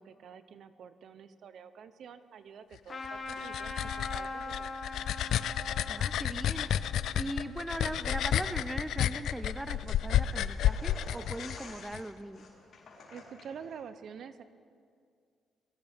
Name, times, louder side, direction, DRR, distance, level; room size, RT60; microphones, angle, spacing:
voice 1, 0.0-5.3 13.1-14.4, right 7 dB, 65° right, 12 dB, 0.7 m, -48 dB
Trumpet, 2.9-7.9, left 3 dB, 40° left, 1.7 m, -42 dB
sound 1, 3.0-12.0, left 10 dB, 80° left, 0.4 m, -31 dB
voice 2, 5.9-12.5, right 1 dB, 10° right, 12 dB, 0.6 m, -40 dB
sound 2, 8.3-13.8, left 3 dB, 60° left, 3.8 m, -51 dB
23.0 x 15.0 x 3.6 m, 2.2 s
cardioid pair, 80°, 0 cm